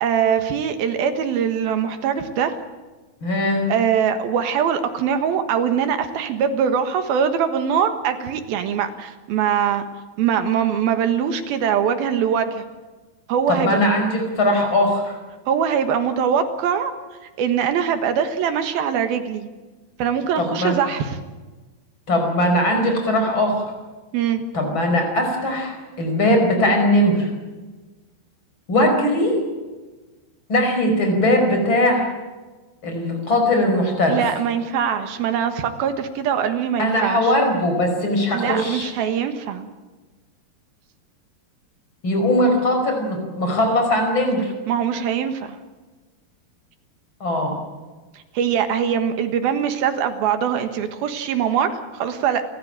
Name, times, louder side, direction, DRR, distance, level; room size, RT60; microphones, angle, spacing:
voice 1, 0.0-2.6 3.7-9.8 10.2-12.6 13.3-13.8 15.5-16.9 17.4-19.5 20.0-21.2 24.1-24.4 34.1-37.3 38.3-39.7 44.7-45.6 48.1-52.5, right 8 dB, 70° right, 8 dB, 3.2 m, -22 dB
voice 2, 3.2-3.6 13.5-15.2 20.4-20.8 22.1-23.7 24.5-27.3 28.7-29.4 30.5-32.1 32.8-34.2 36.8-38.9 42.0-44.5 47.2-47.6, left 1 dB, 30° left, 4 dB, 5.6 m, -20 dB
29.5 x 14.5 x 8.9 m, 1.3 s
omnidirectional pair, 4.7 m